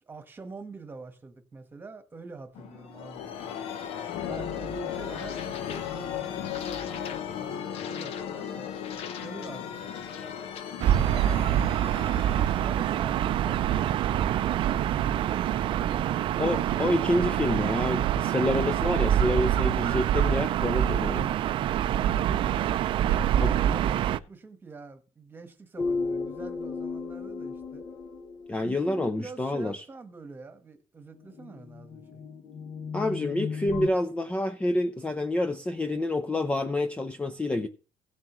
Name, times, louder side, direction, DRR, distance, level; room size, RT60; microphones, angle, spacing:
voice 1, 0.0-3.6 4.2-8.7 9.1-10.3 11.1-12.0 22.8-27.8 28.6-32.2, right 4 dB, 20° right, 1.4 m, -45 dB
sound 1, 2.5-14.1, left 9 dB, 65° left, 0.9 m, -36 dB
Gull seagull / Ocean, 10.8-24.2, right 11 dB, 50° right, 0.5 m, -25 dB
voice 2, 16.4-21.3 23.4-23.5 28.5-29.8 32.9-37.7, left 1 dB, 10° left, 0.5 m, -28 dB
sound 2, 25.8-28.9 31.2-33.9, left 4 dB, 35° left, 0.8 m, -35 dB
16.0 x 7.3 x 3.1 m
cardioid pair, 140°, 11 cm